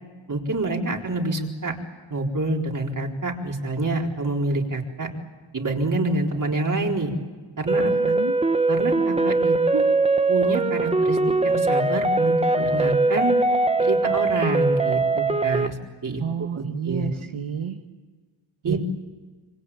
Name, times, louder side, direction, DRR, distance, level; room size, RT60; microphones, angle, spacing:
voice 1, 0.3-1.8 2.1-5.1 5.5-7.1 7.6-8.1 8.7-9.8 10.3-11.2 11.4-13.4 13.8-15.8 16.0-17.1 18.6-18.8, right 2 dB, 40° right, 1 dB, 4.3 m, -27 dB
sound 1, 7.7-15.7, right 3 dB, 15° right, 0.9 m, -21 dB
voice 2, 7.9-8.3 16.2-17.8 18.6-18.8, right 8 dB, 80° right, 4 dB, 1.7 m, -30 dB
27.0 x 25.0 x 8.8 m, 1.4 s
wide cardioid pair, 100°, 47 cm